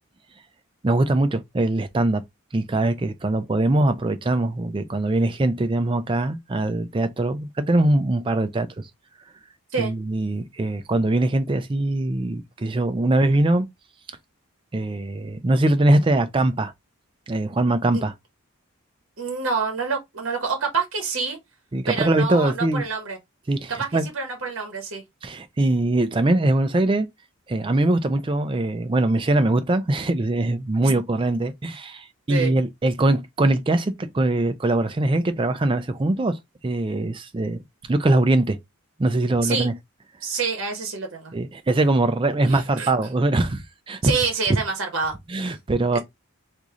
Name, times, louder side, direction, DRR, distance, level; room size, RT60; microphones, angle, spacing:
voice 1, 0.8-2.2 2.5-8.8 9.8-13.7 14.7-16.7 17.3-18.1 21.7-22.8 23.5-24.1 25.2-27.1 27.5-37.6 37.9-38.6 39.0-39.7 41.3-44.1 45.3-46.0, right 2 dB, 25° right, 0.4 m, -22 dB
voice 2, 19.2-21.4 21.9-23.2 23.8-25.0 30.8-31.0 32.3-32.6 39.4-39.7 40.2-41.3 42.5-42.9 44.0-45.1 45.4-45.6 45.9-46.0, right 5 dB, 60° right, 0.9 m, -27 dB
3.1 x 2.5 x 3.6 m
head